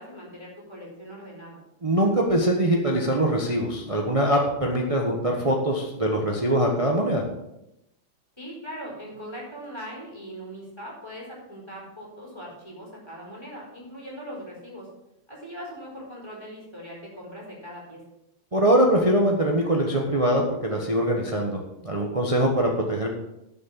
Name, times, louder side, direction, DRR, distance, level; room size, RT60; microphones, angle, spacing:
voice 1, 0.0-1.6 8.4-14.9 15.3-18.0, equal, 10° left, -3 dB, 4.4 m, -40 dB
voice 2, 1.8-7.2 18.5-23.1, right 1 dB, 20° right, 0 dB, 1.1 m, -23 dB
10.5 x 6.5 x 7.4 m, 0.87 s
omnidirectional pair, 2.2 m